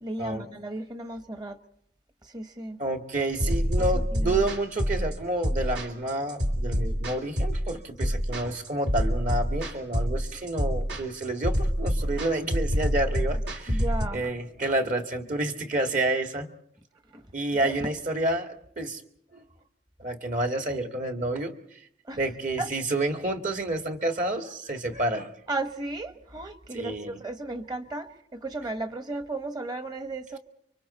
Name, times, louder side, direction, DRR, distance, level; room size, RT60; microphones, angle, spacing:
voice 1, 0.0-1.6 2.3-2.8 3.9-4.4 13.7-14.2 17.1-17.2 17.6-17.8 22.1-22.2 22.6-22.7 25.5-30.4, right 2 dB, 25° right, 1.2 m, -35 dB
voice 2, 2.8-13.8 14.1-16.5 17.3-19.0 19.3-19.4 20.0-21.5 22.1-25.3 26.7-27.2, right 2 dB, 45° right, 1.8 m, -29 dB
sound 1, 3.4-14.1, equal, 75° right, 3.1 m, -27 dB
30.0 x 24.5 x 4.2 m
head